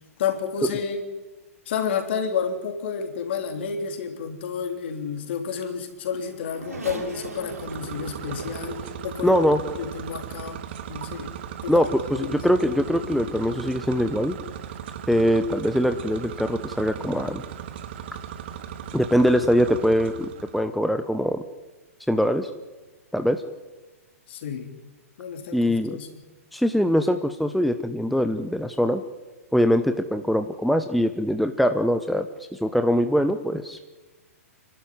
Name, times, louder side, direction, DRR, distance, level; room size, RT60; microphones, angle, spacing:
voice 1, 0.2-1.0 1.7-9.4 9.8-10.6 10.9-11.3 11.6-11.8 12.2-12.4 24.3-24.8 25.2-26.2, left 6 dB, 50° left, 5 dB, 3.5 m, -30 dB
Race car auto racing / Accelerating revving vroom, 5.7-10.2 10.9-11.0 12.2-12.3, right 3 dB, 75° right, 7.2 m, -40 dB
sound 1, 7.3-20.7, right 9 dB, 45° right, 1.6 m, -37 dB
voice 2, 9.2-9.6 11.7-14.3 15.1-17.4 18.9-21.4 22.1-22.5 23.1-23.4 25.5-26.0 26.5-29.0 29.5-32.3 32.5-33.8, equal, ahead, 8 dB, 0.9 m, -22 dB
29.5 x 12.5 x 9.7 m, 1.2 s
figure-of-eight pair, 110°, 8 cm